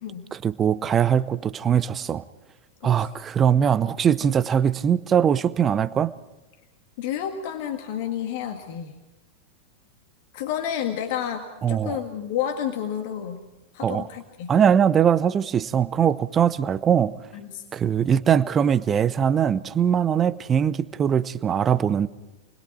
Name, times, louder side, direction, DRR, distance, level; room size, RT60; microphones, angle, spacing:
voice 1, 0.3-2.2 2.8-6.1 11.6-12.0 13.8-14.1 14.5-17.2 17.7-22.1, right 8 dB, 25° right, 15 dB, 0.8 m, -21 dB
voice 2, 7.0-8.9 10.3-13.4 13.7-14.5 17.3-17.6, left 9 dB, 50° left, 5 dB, 1.9 m, -30 dB
29.0 x 21.0 x 4.7 m, 1.0 s
figure-of-eight pair, 90°, 0 cm